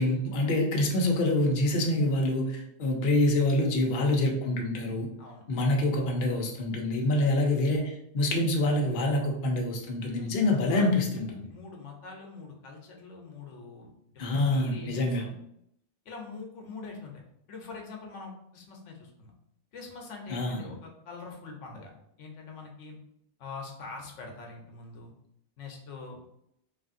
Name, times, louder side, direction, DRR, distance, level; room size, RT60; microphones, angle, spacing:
voice 1, 0.0-5.1 5.5-11.4 14.2-15.3 20.3-20.6, left 1 dB, 55° left, 0 dB, 0.7 m, -26 dB
voice 2, 10.1-10.8 11.5-15.4 16.1-17.1 17.5-19.3 19.7-21.9 22.2-23.0 23.4-25.1 25.6-26.2, left 4 dB, 85° left, 1 dB, 1.0 m, -44 dB
3.3 x 2.5 x 2.5 m, 0.75 s
omnidirectional pair, 1.2 m